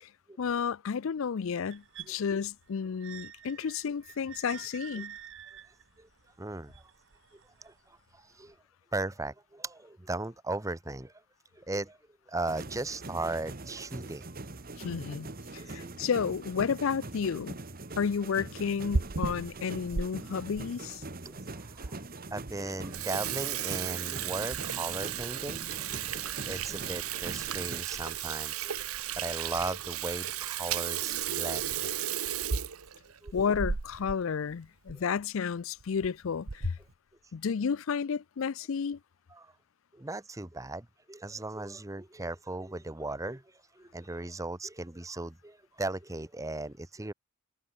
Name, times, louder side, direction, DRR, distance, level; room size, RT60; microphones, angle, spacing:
voice 1, 0.4-5.1 14.8-15.3 15.5-17.6 18.0-21.0 33.3-36.8 37.3-39.0, left 6 dB, 65° left, 0.4 m, -31 dB
sound 1, 1.7-7.8 8.5-8.6, right 11 dB, 60° right, 0.9 m, -49 dB
voice 2, 6.4-6.8 7.6-7.7 8.1-8.5 8.9-11.1 11.5-12.0 12.3-14.3 14.7-15.0 15.6-16.1 21.2-21.9 22.3-25.6 25.9-26.0 26.3-28.8 29.1-31.9 33.2-33.3 39.3-39.5 39.9-43.4 43.8-47.1, right 2 dB, 15° right, 0.8 m, -37 dB
sound 2, 12.5-27.8, right 2 dB, 45° right, 1.7 m, -43 dB
Water tap faucet / Sink (filling or washing), 18.6-20.1 20.6-20.7 21.4-21.5 21.8-21.9 22.3-22.5 22.8-34.2 34.5-34.6 34.9-35.0 35.8-36.1 36.5-36.9, right 8 dB, 80° right, 1.0 m, -34 dB
head